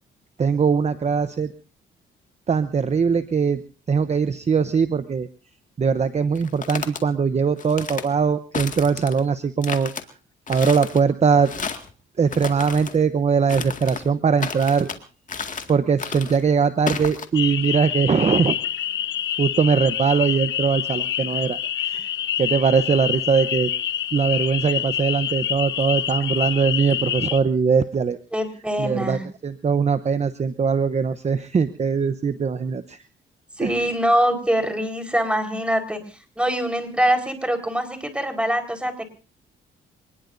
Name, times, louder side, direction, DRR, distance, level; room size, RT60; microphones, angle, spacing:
voice 1, 0.4-1.5 2.5-3.6 3.9-5.3 5.8-9.9 10.5-11.5 12.2-14.9 15.7-18.5 19.4-22.1 22.4-23.7 24.1-28.2 28.8-33.0 33.6-33.9, right 6 dB, 35° right, 11 dB, 0.9 m, -21 dB
sound 1, 6.4-7.0 7.6-8.1 8.5-9.2 9.6-10.0 10.5-11.0 11.4-11.9 12.3-13.0 13.5-14.1 14.4-15.0 15.3-15.7 16.0-16.4 16.9-17.3, left 5 dB, 40° left, 2.1 m, -32 dB
sound 2, 17.3-27.4, left 10 dB, 70° left, 1.0 m, -27 dB
voice 2, 28.3-29.2 33.6-36.0 36.4-39.0, equal, 5° right, 5 dB, 4.4 m, -23 dB
26.5 x 20.0 x 2.7 m, 0.35 s
cardioid pair, 90°, 20 cm